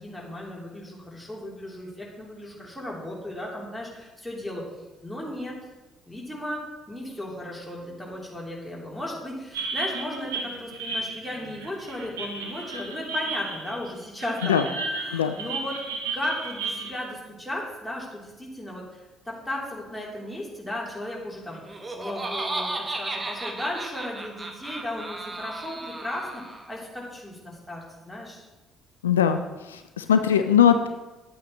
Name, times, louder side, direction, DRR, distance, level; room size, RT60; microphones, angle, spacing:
voice 1, 0.0-4.7 5.0-5.6 6.0-14.6 14.9-15.8 16.1-21.6 21.9-28.5, left 1 dB, 5° left, -4 dB, 3.2 m, -35 dB
sound 1, 9.5-16.9, right 3 dB, 80° right, 1.1 m, -33 dB
Laughter, 21.5-26.8, right 2 dB, 25° right, 1.2 m, -34 dB
voice 2, 29.0-29.4 29.7-30.9, left 8 dB, 80° left, 8 dB, 0.3 m, -20 dB
11.0 x 8.3 x 3.1 m, 1.1 s
figure-of-eight pair, 50°, 0 cm